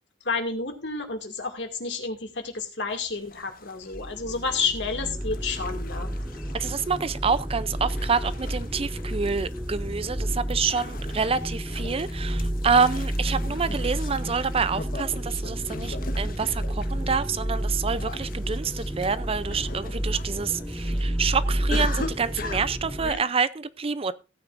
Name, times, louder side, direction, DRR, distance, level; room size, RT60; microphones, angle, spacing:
voice 1, 0.2-6.1 23.0-23.2, left 4 dB, 70° left, 2.4 m, -30 dB
sound 1, 2.9-22.6, left 3 dB, 50° left, 1.3 m, -42 dB
sound 2, 3.9-23.1, right 1 dB, 5° right, 0.9 m, -30 dB
voice 2, 6.5-24.1, right 5 dB, 30° right, 0.5 m, -27 dB
16.5 x 9.1 x 2.6 m
head